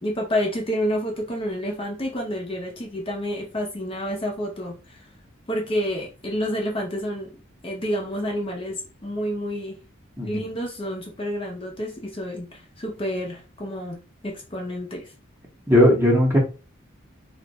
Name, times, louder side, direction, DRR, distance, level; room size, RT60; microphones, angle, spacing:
voice 1, 0.0-5.1 5.5-7.3 7.6-9.8 10.2-15.1, equal, 25° left, 0.6 m, -29 dB
voice 2, 10.2-10.5 15.7-16.4, equal, 10° right, 0.8 m, -17 dB
2.5 x 2.2 x 3.9 m
head